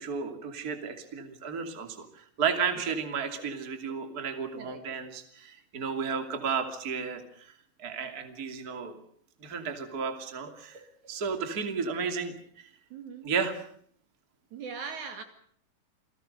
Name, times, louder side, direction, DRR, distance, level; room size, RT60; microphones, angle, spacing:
voice 1, 0.0-7.2 7.8-8.9 9.4-12.3 13.2-13.6, right 6 dB, 30° right, 6 dB, 2.8 m, -33 dB
voice 2, 12.9-13.3 14.5-15.2, right 5 dB, 60° right, 7 dB, 3.6 m, -40 dB
29.0 x 20.0 x 6.7 m, 0.63 s
omnidirectional pair, 4.0 m